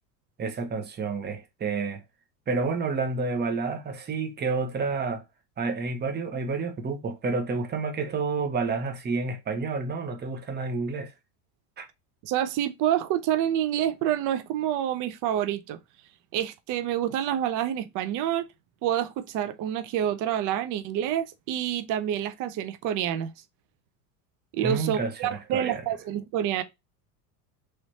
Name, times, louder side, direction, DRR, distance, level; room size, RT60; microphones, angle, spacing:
voice 1, 0.4-2.0 2.5-5.2 5.6-11.1 11.8-11.9 24.6-25.9, right 4 dB, 20° right, 0.8 m, -29 dB
voice 2, 12.2-15.8 16.3-18.5 18.8-23.3 24.5-26.6, right 11 dB, 40° right, 0.5 m, -27 dB
3.2 x 3.1 x 2.6 m
hypercardioid pair, 85°, 48 cm